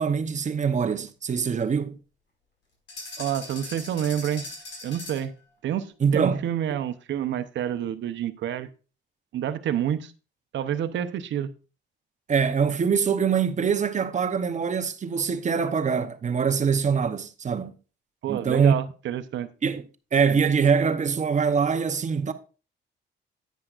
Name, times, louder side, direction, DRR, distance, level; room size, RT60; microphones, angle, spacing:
voice 1, 0.0-2.0 6.0-6.4 12.3-17.7 18.3-18.7 19.6-22.3, right 6 dB, 35° right, 0.8 m, -24 dB
sound 1, 2.9-5.4, left 2 dB, 65° left, 5.1 m, -40 dB
voice 2, 3.2-4.5 4.8-5.3 5.6-8.7 9.3-10.1 10.5-11.5 18.2-19.5, right 10 dB, 70° right, 0.8 m, -28 dB
9.7 x 9.3 x 2.5 m
cardioid pair, 90°, 20 cm